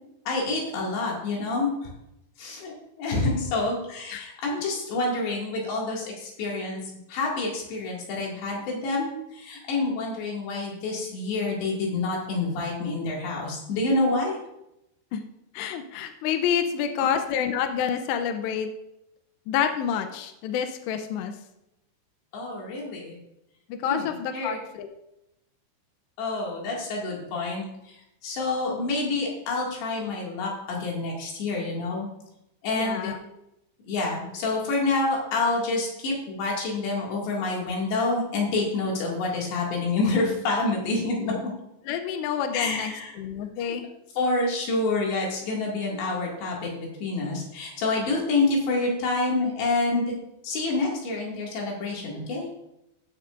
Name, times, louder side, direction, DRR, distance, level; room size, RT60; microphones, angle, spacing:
voice 1, 0.3-1.9 2.4-6.8 7.1-14.4 22.3-23.2 23.9-24.6 26.2-28.0 28.2-32.1 32.6-33.1 33.8-41.5 42.5-43.1 43.6-43.7 44.2-50.2 50.4-52.5, left 3 dB, 65° left, -3 dB, 4.3 m, -27 dB
voice 2, 15.5-18.7 19.5-21.3 23.7-24.9 32.8-33.2 41.9-43.9, left 8 dB, 80° left, 6 dB, 2.5 m, -28 dB
14.5 x 10.0 x 2.6 m, 0.87 s
omnidirectional pair, 5.7 m